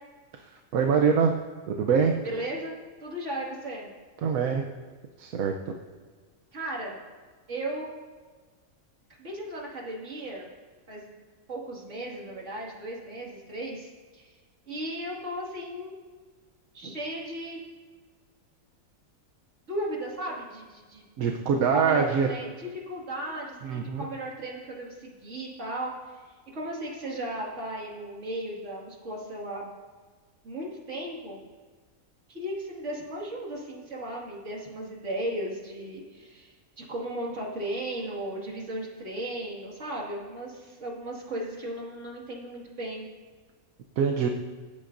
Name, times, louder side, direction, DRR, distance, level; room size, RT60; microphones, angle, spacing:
voice 1, 0.7-1.3 1.7-2.1 4.2-4.6 5.2-5.5 21.2-22.3 23.6-24.1 44.0-44.3, right 6 dB, 80° right, 3 dB, 1.2 m, -23 dB
voice 2, 2.2-2.7 3.0-3.9 6.5-7.0 7.5-7.9 9.2-10.5 10.9-11.1 11.5-14.3 14.7-16.0 16.7-17.6 19.7-21.0 21.7-29.8 30.4-31.4 32.3-43.1, right 1 dB, 60° right, -3 dB, 2.4 m, -36 dB
25.0 x 8.7 x 2.6 m, 1.5 s
omnidirectional pair, 1.4 m